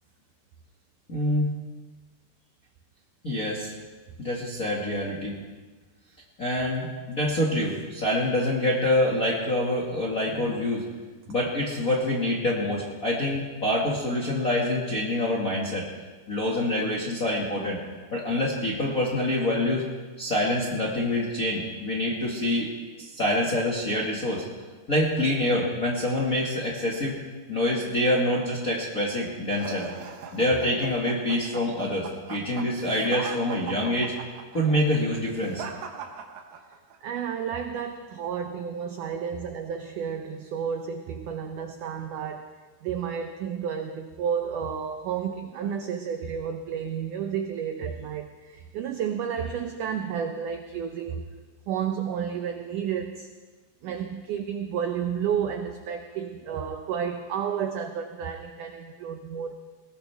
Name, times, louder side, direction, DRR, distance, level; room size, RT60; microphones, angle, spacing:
voice 1, 1.1-1.5 3.2-3.7 4.2-5.3 6.4-10.8 11.3-15.9 16.3-17.8 18.1-19.9 20.2-22.7 23.0-24.4 24.9-27.1 27.5-29.9 30.3-34.1 34.5-35.6, left 1 dB, 35° left, -4 dB, 1.3 m, -26 dB
sound 1, 29.5-37.0, right 6 dB, 65° right, 2.6 m, -39 dB
voice 2, 37.0-42.5 42.8-51.3 51.7-53.3 53.8-59.6, right 8 dB, 85° right, 6 dB, 1.8 m, -31 dB
21.0 x 18.5 x 3.5 m, 1.3 s
omnidirectional pair, 4.7 m